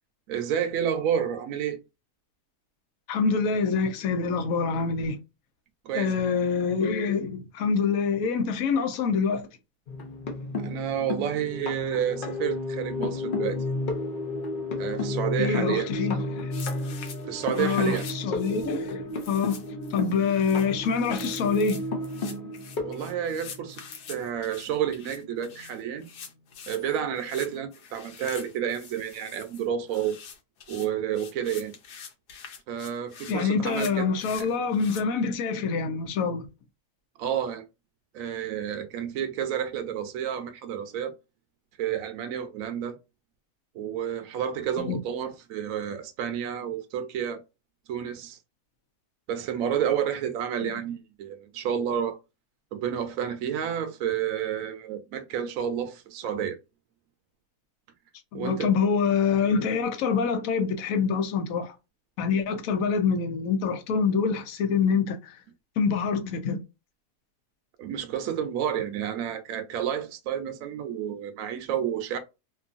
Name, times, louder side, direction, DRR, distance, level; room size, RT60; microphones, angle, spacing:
voice 1, 0.3-1.8 5.8-6.1 10.6-13.6 14.8-15.9 17.2-18.0 22.8-23.8 24.1-26.1 26.7-30.2 30.7-31.7 32.7-34.1 34.4-34.5 37.2-37.6 38.1-41.1 41.8-43.0 43.7-47.4 47.9-48.4 49.3-52.2 52.7-56.6 58.3-58.7 67.8-72.2, right 9 dB, 65° right, 1.0 m, -30 dB
voice 2, 3.1-5.2 5.9-9.5 15.4-16.5 17.6-19.6 19.9-21.8 33.3-36.5 44.8-45.0 50.6-50.7 58.3-61.7 62.2-65.4 65.8-66.6, left 5 dB, 65° left, 1.0 m, -26 dB
sound 1, 9.9-23.8 25.1-25.2 25.5-25.7, left 2 dB, 50° left, 0.6 m, -32 dB
sound 2, 16.5-35.0, left 7 dB, 85° left, 1.3 m, -45 dB
3.0 x 2.5 x 2.5 m
omnidirectional pair, 1.7 m